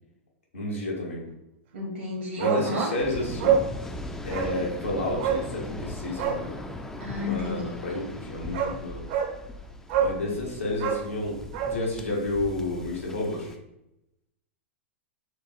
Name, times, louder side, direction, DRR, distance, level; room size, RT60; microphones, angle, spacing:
voice 1, 0.5-1.3 2.4-3.6 4.2-6.6 7.2-9.1 10.0-13.5, left 2 dB, 80° left, -2 dB, 1.3 m, -31 dB
voice 2, 1.7-3.0 7.0-7.8, left 1 dB, 75° right, -4 dB, 1.1 m, -31 dB
Bark, 2.4-2.7 3.0-3.1 3.4-3.7 4.3-4.6 5.2-5.5 6.1-6.4 8.0-8.1 8.5-8.8 9.1-9.3 9.9-10.2 10.7-11.8 12.1-12.2, right 7 dB, 55° right, 0.7 m, -26 dB
Waves surf, 3.0-13.6, left 1 dB, 5° left, 0.3 m, -39 dB
6.4 x 2.3 x 2.9 m, 0.86 s
figure-of-eight pair, 100°, 7 cm